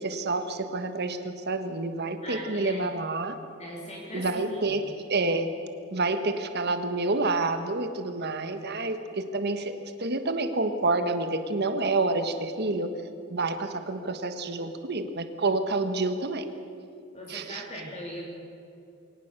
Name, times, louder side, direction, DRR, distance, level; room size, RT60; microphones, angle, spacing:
voice 1, 0.0-3.4 4.1-4.8 5.1-5.5 5.9-9.7 10.0-12.9 13.3-16.4 17.3-17.6, right 2 dB, 50° right, 8 dB, 1.5 m, -28 dB
voice 2, 2.2-2.9 3.6-4.8 17.1-18.3, equal, 35° left, -3 dB, 3.3 m, -40 dB
22.5 x 18.5 x 6.8 m, 2.7 s
head